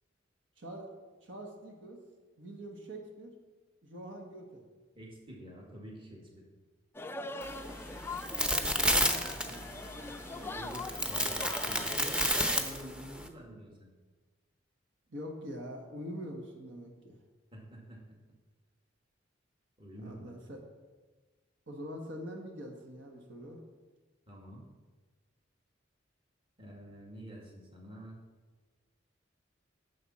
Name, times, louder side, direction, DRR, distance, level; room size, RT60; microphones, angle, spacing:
voice 1, 0.6-0.9 1.2-2.0 2.4-3.4 3.8-4.7 8.4-10.8 15.1-17.2 20.0-20.6 21.7-23.6, equal, 75° right, 1 dB, 1.4 m, -45 dB
voice 2, 4.9-6.4 10.5-13.9 17.5-18.2 19.8-20.3 24.3-24.7 26.6-28.2, equal, 30° right, -1 dB, 1.9 m, -47 dB
sound 1, 6.9-12.6, left 2 dB, 10° left, 0.3 m, -42 dB
sound 2, 7.4-13.3, equal, 5° right, 0.7 m, -32 dB
11.0 x 7.2 x 4.2 m, 1.3 s
head